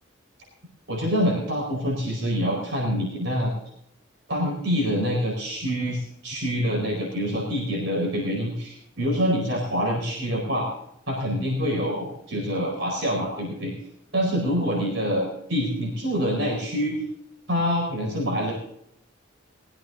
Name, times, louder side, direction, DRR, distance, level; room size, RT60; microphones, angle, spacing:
voice 1, 0.9-3.5 4.3-10.7 11.1-13.7 14.1-17.0 17.5-18.5, equal, 70° right, -2 dB, 4.9 m, -26 dB
21.0 x 15.5 x 2.7 m, 0.76 s
head